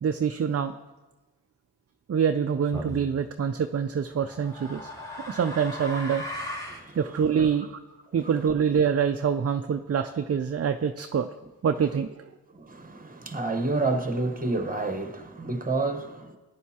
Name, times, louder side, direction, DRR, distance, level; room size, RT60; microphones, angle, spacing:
voice 1, 0.0-0.7 2.1-4.9 5.3-6.2 7.0-7.8 8.1-11.3 11.6-12.2, right 7 dB, 35° right, 0.5 m, -25 dB
sound 1, 2.7-3.1 4.1-6.9, equal, 10° left, 2.9 m, -37 dB
voice 2, 6.7-7.0 12.5-16.4, right 3 dB, 20° right, 1.1 m, -29 dB
14.0 x 10.5 x 2.9 m
cardioid pair, 60°, 41 cm